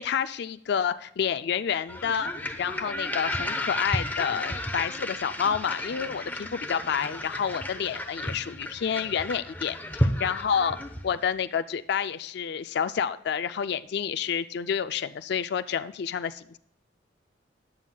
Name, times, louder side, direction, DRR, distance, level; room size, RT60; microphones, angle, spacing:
voice 1, 0.0-2.3 2.6-10.8 11.0-16.6, left 7 dB, 60° left, 11 dB, 0.4 m, -29 dB
sound 1, 1.9-11.2, left 1 dB, 10° left, 0.9 m, -32 dB
13.5 x 9.8 x 2.3 m, 0.71 s
head